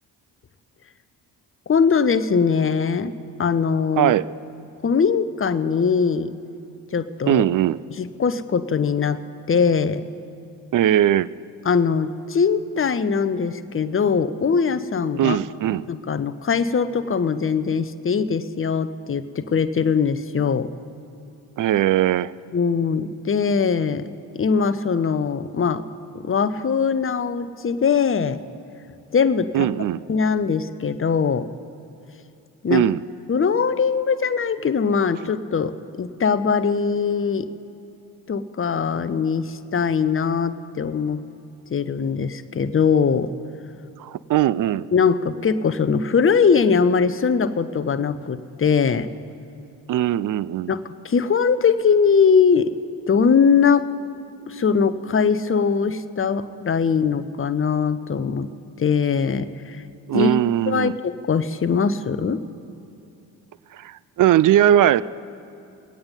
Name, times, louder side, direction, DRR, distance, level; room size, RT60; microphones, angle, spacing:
voice 1, 1.7-3.1 3.4-4.1 4.8-6.3 6.9-7.4 8.0-9.2 9.5-10.0 11.7-15.4 15.9-20.7 22.5-24.1 24.3-25.8 26.1-28.4 29.1-29.7 30.1-31.5 32.6-32.8 33.3-37.5 38.3-41.2 41.7-43.3 44.9-49.1 50.7-52.7 53.1-53.9 54.5-58.5 58.8-59.8 60.1-60.3 60.7-62.4, left 6 dB, 30° left, 11 dB, 0.8 m, -21 dB
voice 2, 4.0-4.3 7.3-7.8 10.7-11.3 15.2-15.9 21.6-22.3 29.5-30.0 32.7-33.0 44.0-44.8 49.9-50.7 60.1-60.9 63.7-65.0, right 12 dB, 45° right, 18 dB, 0.5 m, -19 dB
20.5 x 8.7 x 5.4 m, 2.7 s
hypercardioid pair, 45°, 45 cm